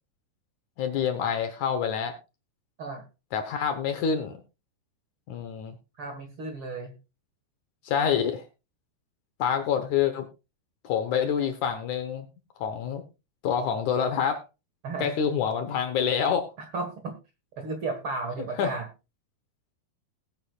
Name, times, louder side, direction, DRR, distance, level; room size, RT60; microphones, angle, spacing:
voice 1, 0.8-2.1 3.3-4.4 5.3-5.8 7.8-8.4 9.4-10.3 10.8-12.3 12.6-13.0 13.4-14.4 15.0-16.5 18.6-18.7, left 7 dB, 65° left, 9 dB, 2.2 m, -27 dB
voice 2, 6.0-6.9 14.8-15.1 16.6-17.2 17.6-18.9, right 3 dB, 50° right, 5 dB, 1.9 m, -34 dB
19.0 x 8.8 x 2.4 m, 0.28 s
omnidirectional pair, 4.2 m